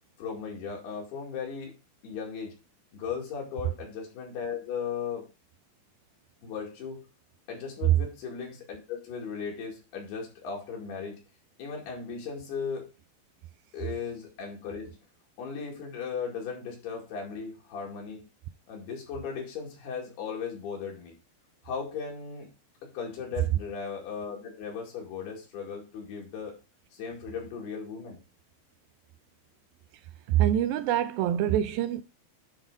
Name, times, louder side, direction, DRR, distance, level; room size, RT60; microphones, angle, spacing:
voice 1, 0.2-1.7 2.0-2.5 2.9-5.2 6.4-7.0 7.5-11.2 11.6-12.9 13.7-15.0 15.4-18.3 18.7-21.1 21.6-22.5 22.8-26.6 26.9-28.2, left 6 dB, 90° left, 4.2 m, -37 dB
voice 2, 30.3-32.0, right 11 dB, 80° right, 2.2 m, -25 dB
9.9 x 3.7 x 4.8 m
omnidirectional pair, 4.5 m